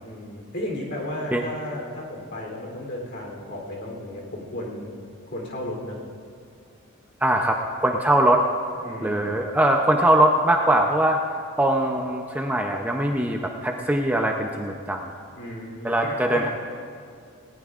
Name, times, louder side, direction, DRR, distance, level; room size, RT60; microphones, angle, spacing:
voice 1, 0.0-5.0 5.3-6.0 8.8-9.4 15.3-16.5, left 1 dB, 55° left, -1 dB, 3.3 m, -34 dB
voice 2, 7.2-8.4 9.0-11.2 11.6-15.1 15.8-16.5, right 1 dB, 10° right, 1 dB, 0.6 m, -21 dB
19.5 x 19.0 x 2.5 m, 2.3 s
head